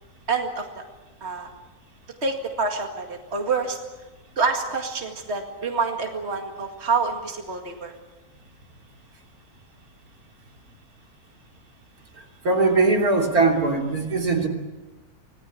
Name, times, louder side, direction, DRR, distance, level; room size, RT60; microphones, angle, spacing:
voice 1, 0.3-0.8 1.2-1.5 2.2-3.8 4.4-7.9, right 4 dB, 45° right, 2 dB, 2.4 m, -27 dB
voice 2, 12.4-14.5, right 3 dB, 75° right, 2 dB, 3.6 m, -20 dB
26.5 x 19.0 x 8.5 m, 1.1 s
omnidirectional pair, 1.6 m